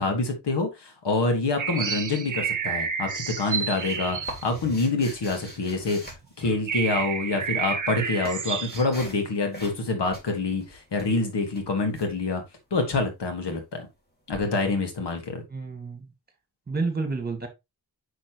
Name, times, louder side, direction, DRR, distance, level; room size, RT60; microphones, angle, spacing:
voice 1, 0.0-6.0 6.4-12.4 12.7-13.9 14.3-15.4, left 3 dB, 85° left, 1.9 m, -26 dB
sound 1, 1.6-5.5 6.1-6.2 6.4-8.9, right 6 dB, 50° right, 0.9 m, -30 dB
sound 2, 3.1-6.9 7.7-9.2 9.5-9.8 10.1-12.1 14.3-14.4, equal, 25° left, 3.1 m, -43 dB
voice 2, 15.5-16.1 16.7-17.5, right 3 dB, 25° right, 2.0 m, -29 dB
6.1 x 6.0 x 3.0 m
wide cardioid pair, 90°, 40 cm